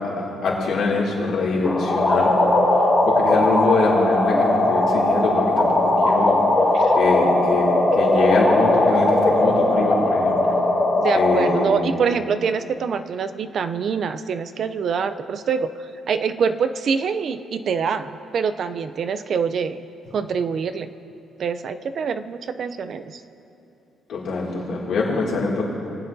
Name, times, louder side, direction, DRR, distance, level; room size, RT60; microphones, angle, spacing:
voice 1, 0.2-2.3 3.0-6.4 7.0-10.5 11.1-11.8 24.1-25.6, left 3 dB, 75° left, -4 dB, 2.3 m, -23 dB
sound 1, 1.6-11.6, left 2 dB, 15° left, 1.7 m, -19 dB
voice 2, 11.0-15.7 16.1-19.9 20.1-20.9 21.4-23.2, right 6 dB, 60° right, 11 dB, 0.4 m, -25 dB
21.5 x 7.7 x 2.6 m, 2.8 s
cardioid pair, 90°, 0 cm